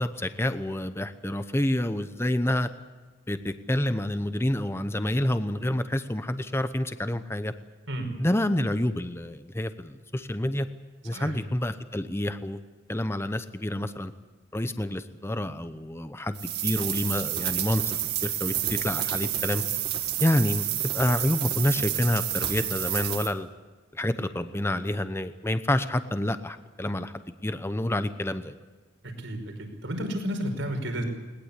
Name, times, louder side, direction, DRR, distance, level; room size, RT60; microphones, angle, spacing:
voice 1, 0.0-2.7 3.3-7.5 8.2-10.7 11.0-12.6 12.9-14.1 14.5-17.9 18.2-19.6 20.2-23.5 23.9-28.5, left 1 dB, 15° left, 11 dB, 0.9 m, -28 dB
sound 1, 16.3-23.3, right 11 dB, 60° right, 2.1 m, -29 dB
voice 2, 29.0-31.0, equal, 85° right, 4 dB, 5.2 m, -32 dB
20.5 x 20.0 x 8.4 m, 1.3 s
head